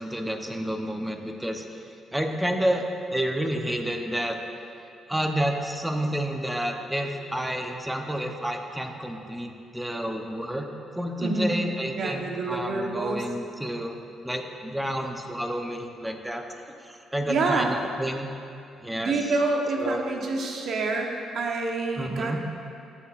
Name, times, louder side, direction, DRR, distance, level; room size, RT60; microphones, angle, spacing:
voice 1, 0.0-1.6 2.1-4.4 5.1-10.6 10.9-14.0 14.2-16.4 16.8-18.3 18.8-19.3 19.8-20.0 22.0-22.4, equal, 5° right, 3 dB, 0.9 m, -30 dB
voice 2, 11.2-11.6 12.0-13.2 17.3-17.7 19.0-22.4, right 3 dB, 65° right, 1 dB, 1.2 m, -27 dB
15.0 x 7.0 x 2.6 m, 2.6 s
cardioid pair, 90°, 0 cm